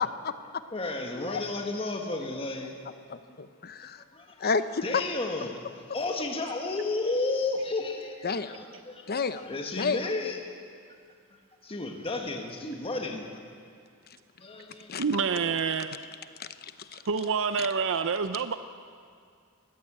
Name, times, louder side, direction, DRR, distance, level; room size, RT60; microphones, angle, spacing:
voice 1, 0.0-0.6 1.2-1.4 3.1-4.0 4.4-5.0 8.2-8.6 9.1-9.5 9.8-10.0 14.9-15.0 16.4-17.0, left 5 dB, 45° left, 11 dB, 0.9 m, -31 dB
voice 2, 0.7-2.7 4.0-4.5 4.8-10.4 11.3-13.3 14.4-15.0 15.3-15.8, left 2 dB, 25° left, 3 dB, 1.6 m, -33 dB
voice 3, 15.0-16.0 16.9-18.6, right 5 dB, 60° right, 10 dB, 0.6 m, -27 dB
20.5 x 15.5 x 8.8 m, 2.2 s
head